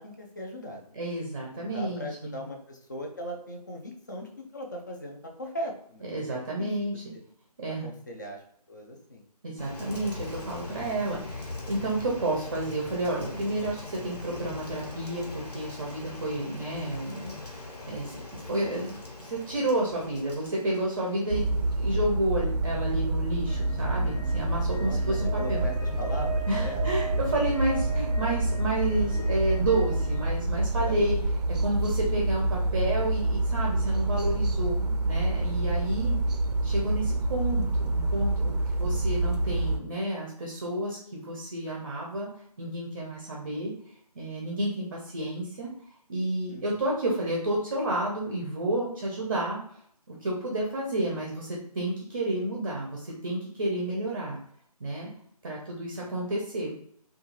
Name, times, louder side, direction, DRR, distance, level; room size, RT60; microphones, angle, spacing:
voice 1, 0.0-1.0 1.5-6.7 7.8-8.4 8.7-9.2 24.8-26.9 30.8-31.1 46.5-46.6 55.9-56.3, equal, 30° left, 1 dB, 0.4 m, -39 dB
voice 2, 0.9-2.4 6.0-7.0 7.6-7.9 9.4-15.2 15.5-21.4 21.7-25.6 26.5-31.2 31.6-36.2 36.6-42.3 42.6-43.7 44.2-45.7 46.1-49.6 50.2-54.4 54.8-55.1 55.4-56.7, right 1 dB, 35° right, -2 dB, 0.5 m, -30 dB
Rain, 9.6-22.0, left 2 dB, 85° left, 1.2 m, -41 dB
sound 1, 21.3-39.8, right 2 dB, 90° right, 0.4 m, -27 dB
sound 2, 23.5-30.3, right 1 dB, 65° left, 0.9 m, -37 dB
2.4 x 2.3 x 2.9 m, 0.68 s
figure-of-eight pair, 160°, 20 cm